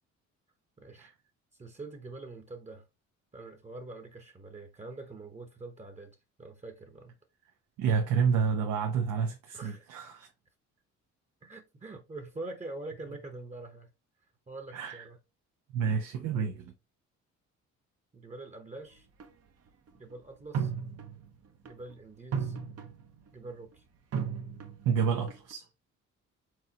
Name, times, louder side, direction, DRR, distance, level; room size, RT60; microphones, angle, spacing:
voice 1, 0.8-1.1 1.6-2.9 3.3-7.2 9.5-9.9 11.4-13.9 14.5-15.2 18.1-19.1 19.9-20.7 21.6-22.6 23.3-23.8, right 2 dB, 25° right, 1.0 m, -44 dB
voice 2, 7.8-10.3 14.7-15.0 15.7-16.7 24.8-25.7, right 6 dB, 90° right, 0.9 m, -29 dB
sound 1, 19.2-19.3 20.5-21.3 21.7-21.9 22.3-23.2 24.1-24.9 25.3-25.5, right 7 dB, 55° right, 0.9 m, -34 dB
4.8 x 3.8 x 2.8 m
cardioid pair, 90°, 30 cm